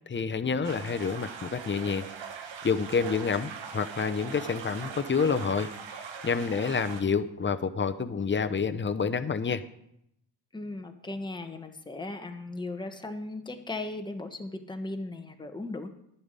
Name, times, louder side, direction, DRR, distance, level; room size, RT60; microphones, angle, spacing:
voice 1, 0.1-2.0 2.6-5.7 6.2-9.6, left 5 dB, 25° left, 11 dB, 0.8 m, -28 dB
sound 1, 0.6-7.0, right 6 dB, 80° right, 1.4 m, -41 dB
voice 2, 10.5-15.9, left 2 dB, 10° left, 5 dB, 1.2 m, -37 dB
10.5 x 5.7 x 8.2 m, 0.77 s
cardioid pair, 70°, 44 cm